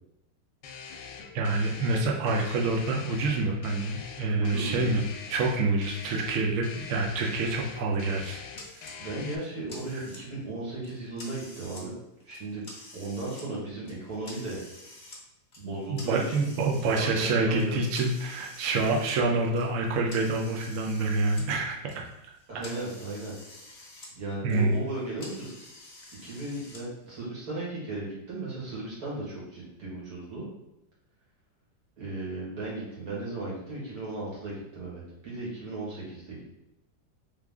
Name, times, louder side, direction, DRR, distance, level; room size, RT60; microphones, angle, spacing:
sound 1, 0.6-9.4, left 6 dB, 75° left, 1.1 m, -44 dB
voice 1, 1.3-5.0 5.3-8.4 8.8-8.9 9.9-10.0 15.9-22.0 24.4-24.7, right 3 dB, 70° right, 0 dB, 0.7 m, -27 dB
voice 2, 4.4-4.9 9.0-11.9 12.2-12.6 12.9-14.6 15.6-16.5 16.9-17.8 22.5-23.3 24.2-25.5 26.2-30.5 32.0-36.4, right 2 dB, 55° right, -6 dB, 2.0 m, -36 dB
sound 2, 8.6-9.0 9.4-10.4 10.8-11.9 12.2-13.5 13.9-15.2 15.5-17.0 17.6-21.5 21.8-24.1 24.4-26.8, left 2 dB, 40° left, 0.7 m, -48 dB
3.7 x 3.2 x 3.5 m, 0.87 s
omnidirectional pair, 2.0 m